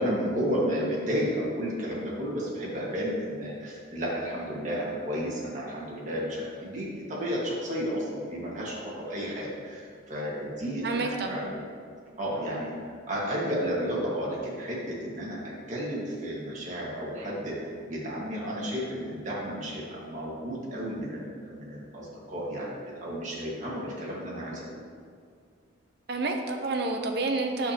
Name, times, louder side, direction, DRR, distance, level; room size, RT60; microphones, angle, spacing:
voice 1, 0.0-11.6 12.2-15.4 15.7-24.8, equal, 40° right, -5 dB, 1.7 m, -32 dB
voice 2, 10.8-11.5 26.1-27.7, right 3 dB, 55° right, 4 dB, 0.7 m, -29 dB
8.1 x 6.7 x 2.9 m, 2.2 s
head